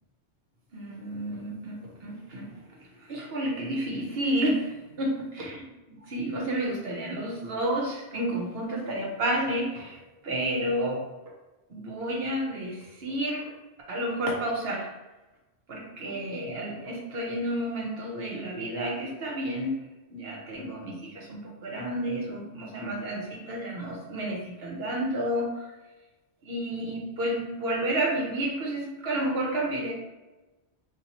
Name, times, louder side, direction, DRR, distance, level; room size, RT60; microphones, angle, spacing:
voice 1, 0.7-11.1 11.7-13.5 13.9-14.9 15.7-19.8 20.1-25.7 26.4-29.9, right 1 dB, 65° right, -1 dB, 1.0 m, -31 dB
2.7 x 2.6 x 4.1 m, 1.1 s
omnidirectional pair, 1.1 m